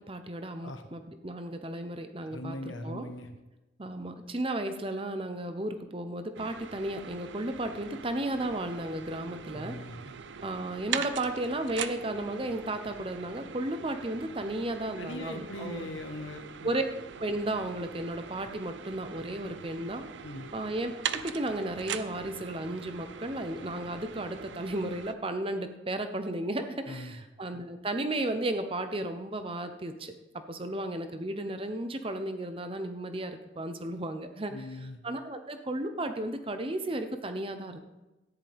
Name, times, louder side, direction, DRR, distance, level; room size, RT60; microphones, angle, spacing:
voice 1, 0.1-3.1 3.8-9.8 10.4-15.9 16.6-16.8 17.2-20.1 20.5-34.7 35.0-37.8, right 1 dB, 30° right, 8 dB, 0.8 m, -34 dB
voice 2, 2.2-3.3 9.5-10.0 15.0-16.7 20.2-20.5 26.9-27.2 34.5-35.0, left 1 dB, 85° left, 6 dB, 1.3 m, -40 dB
sound 1, 6.4-25.2, right 7 dB, 70° right, 0.5 m, -42 dB
13.5 x 10.5 x 3.5 m, 1.1 s
head